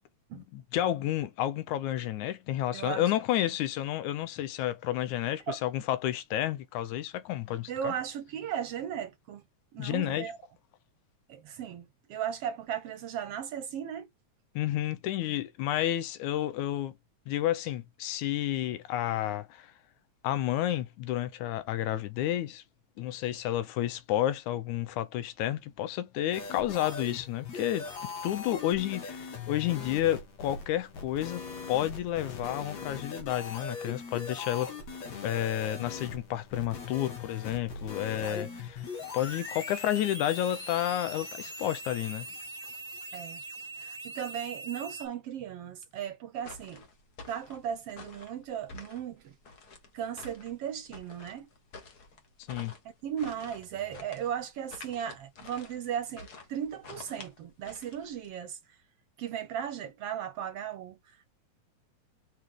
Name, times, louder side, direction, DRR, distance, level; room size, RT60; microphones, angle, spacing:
voice 1, 0.3-7.9 9.8-10.3 14.6-16.9 17.3-19.7 20.2-22.6 23.0-34.7 35.2-38.9 39.1-42.3 52.5-52.7, left 13 dB, 85° left, 2.2 m, -31 dB
voice 2, 2.7-3.1 5.5-5.6 7.7-9.4 9.7-10.4 11.3-14.1 38.2-38.7 39.0-39.1 43.1-43.4 43.8-46.8 47.3-49.3 49.9-51.5 53.0-58.6 59.2-61.2, right 9 dB, 70° right, 1.6 m, -36 dB
sound 1, 26.3-45.1, left 3 dB, 70° left, 3.5 m, -41 dB
sound 2, 46.4-58.4, left 3 dB, 40° left, 1.5 m, -50 dB
6.4 x 5.0 x 3.7 m
omnidirectional pair, 3.3 m